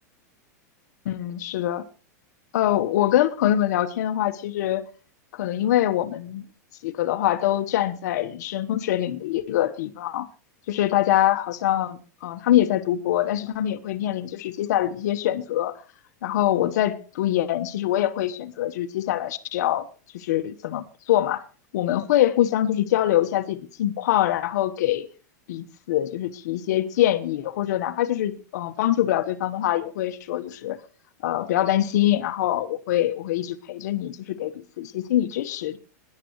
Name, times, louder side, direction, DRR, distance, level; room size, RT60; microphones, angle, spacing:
voice 1, 1.0-1.8 2.5-4.8 5.3-6.4 6.8-10.3 10.7-15.7 16.2-19.8 20.1-21.4 21.7-25.1 25.5-30.8 31.2-35.8, left 12 dB, 70° left, 1.1 m, -24 dB
21.0 x 11.0 x 3.1 m
hypercardioid pair, 130°, 10 cm